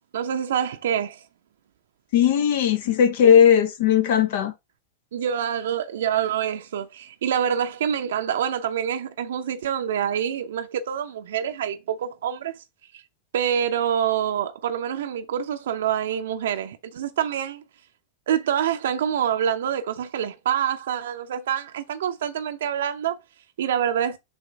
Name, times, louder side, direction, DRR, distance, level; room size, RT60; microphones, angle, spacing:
voice 1, 0.1-1.2 5.1-12.5 12.9-13.0 13.3-17.6 18.3-23.1 23.6-24.2, right 9 dB, 60° right, 0.7 m, -26 dB
voice 2, 2.1-4.5, left 8 dB, 55° left, 1.1 m, -18 dB
7.0 x 2.9 x 5.4 m
figure-of-eight pair, 90°, 0 cm